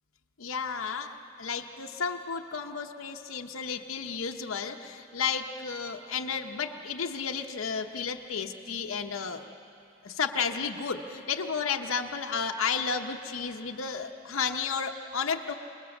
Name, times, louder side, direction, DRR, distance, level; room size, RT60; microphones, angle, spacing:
voice 1, 0.4-9.5 10.0-15.5, left 6 dB, 85° left, 3 dB, 0.9 m, -32 dB
26.5 x 20.5 x 7.2 m, 2.8 s
head